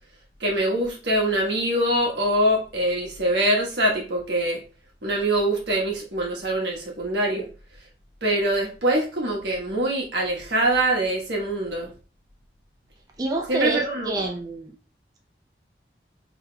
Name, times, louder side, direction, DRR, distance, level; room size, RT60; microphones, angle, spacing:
voice 1, 0.4-4.6 5.0-7.5 8.2-11.9 13.5-14.3, right 1 dB, 80° right, -1 dB, 1.3 m, -24 dB
voice 2, 13.2-14.7, right 2 dB, 20° right, 1 dB, 0.4 m, -27 dB
4.8 x 3.3 x 2.2 m, 0.34 s
head